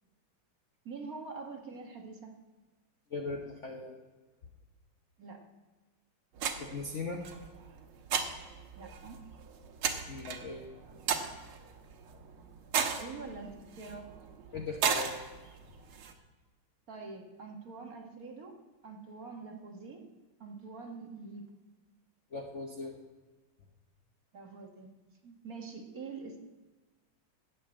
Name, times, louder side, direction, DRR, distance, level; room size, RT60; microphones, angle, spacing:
voice 1, 0.8-2.4 5.2-5.5 8.8-9.2 12.9-14.1 16.9-18.5 18.8-20.0 20.4-21.5 24.3-24.9 25.2-26.5, right 4 dB, 45° right, 2 dB, 1.7 m, -45 dB
voice 2, 3.1-4.0 6.6-7.2 10.1-10.6 14.5-15.1 22.3-23.0, left 3 dB, 50° left, 1 dB, 1.0 m, -38 dB
sound 1, 6.3-16.1, right 7 dB, 85° right, 1.9 m, -36 dB
10.5 x 7.3 x 8.5 m, 1.3 s
omnidirectional pair, 2.3 m